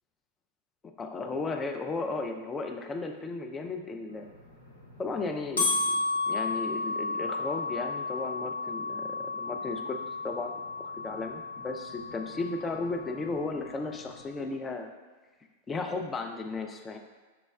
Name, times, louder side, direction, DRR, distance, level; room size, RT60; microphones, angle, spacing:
voice 1, 0.8-4.3 5.0-5.9 6.3-10.5 10.8-14.9 15.7-17.0, left 3 dB, 20° left, 4 dB, 0.4 m, -35 dB
sound 1, 4.4-14.2, left 3 dB, 80° left, 0.7 m, -33 dB
5.6 x 2.0 x 2.3 m, 1.3 s
figure-of-eight pair, 95°, 0 cm